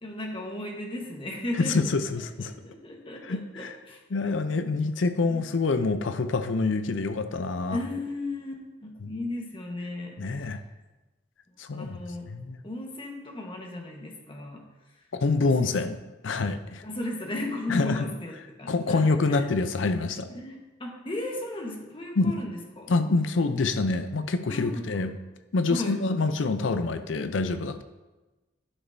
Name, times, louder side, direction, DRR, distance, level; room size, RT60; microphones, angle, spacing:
voice 1, 0.0-1.8 2.2-4.0 5.3-5.4 7.7-10.6 11.5-12.3 12.6-14.7 14.9-15.0 15.4-15.6 16.8-19.4 20.3-22.9 23.5-23.6 24.5-25.0 25.7-26.0, left 2 dB, 30° left, 0 dB, 1.2 m, -36 dB
voice 2, 1.6-2.5 3.3-3.7 4.1-7.8 9.0-9.1 10.2-10.6 11.6-12.0 12.3-12.6 15.1-16.8 17.7-18.1 18.7-20.3 22.2-22.4 22.9-25.1 25.5-27.8, left 3 dB, 85° left, 10 dB, 0.6 m, -26 dB
11.0 x 6.1 x 2.7 m, 1.1 s
head